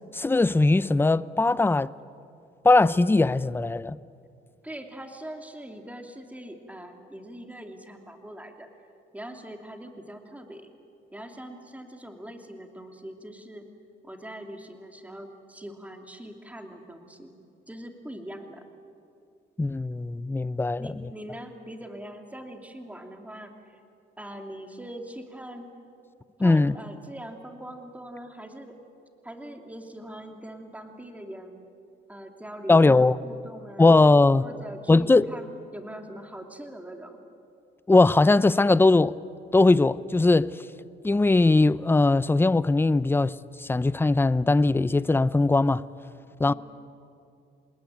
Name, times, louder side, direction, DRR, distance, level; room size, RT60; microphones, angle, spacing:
voice 1, 0.1-1.9 2.6-4.0 19.6-20.9 26.4-26.7 32.7-33.1 33.8-34.4 34.9-35.3 37.9-39.1 39.5-40.6 41.0-45.8 46.4-46.5, left 3 dB, 10° left, 0.6 m, -20 dB
voice 2, 4.6-8.7 9.1-10.7 11.1-13.6 14.0-17.4 17.7-18.6 20.8-23.8 24.2-25.7 26.4-28.7 29.2-31.6 32.1-33.9 34.4-37.2 46.5-46.6, right 1 dB, 5° right, 2.9 m, -42 dB
27.0 x 20.5 x 9.3 m
cardioid pair, 90°, 20 cm